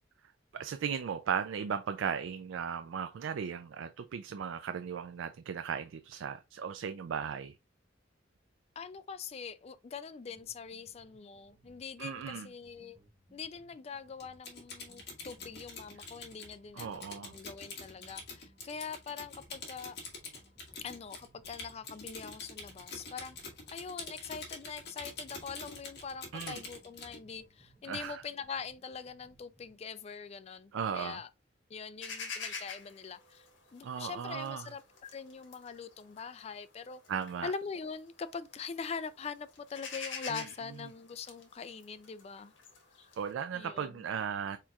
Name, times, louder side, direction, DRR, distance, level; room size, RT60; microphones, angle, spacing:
voice 1, 0.5-7.6 12.0-12.5 16.7-17.3 26.3-26.6 27.8-28.2 30.7-31.2 33.8-34.7 37.1-37.5 40.3-40.5 43.2-44.6, right 7 dB, 85° right, 0.4 m, -36 dB
voice 2, 8.8-13.0 13.3-20.0 20.8-23.4 23.7-31.3 31.7-33.5 33.7-37.0 37.4-42.5 43.5-44.0, left 5 dB, 35° left, 0.3 m, -43 dB
sound 1, 10.3-29.8, right 2 dB, 5° right, 2.5 m, -65 dB
Typing, 14.2-27.2, left 3 dB, 60° left, 1.9 m, -46 dB
sound 2, 32.0-38.2 38.6-39.1 39.4-43.3, left 5 dB, 80° left, 1.6 m, -45 dB
4.7 x 4.4 x 2.4 m
head